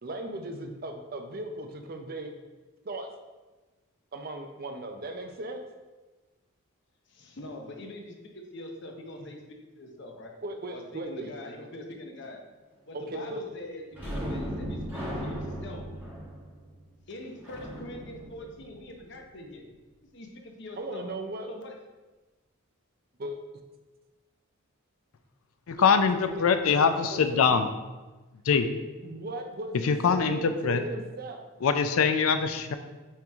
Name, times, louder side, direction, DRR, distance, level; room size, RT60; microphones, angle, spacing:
voice 1, 0.0-2.3 2.8-3.1 4.1-5.6 9.2-9.3 10.4-11.3 12.9-13.5 20.8-21.5 23.2-23.4 25.8-27.6 29.0-31.4, right 1 dB, 45° right, 5 dB, 0.5 m, -37 dB
voice 2, 7.1-10.3 10.7-12.4 12.9-15.9 17.1-19.6 20.1-21.1 21.5-21.8, left 1 dB, 55° left, 2 dB, 0.8 m, -43 dB
sound 1, 13.9-19.3 26.7-26.8 27.2-27.3, equal, 10° right, 1.3 m, -37 dB
voice 3, 25.7-27.7 28.5-28.7 29.8-30.8 31.6-32.7, left 6 dB, 75° left, 9 dB, 0.4 m, -23 dB
8.9 x 3.0 x 3.5 m, 1.2 s
head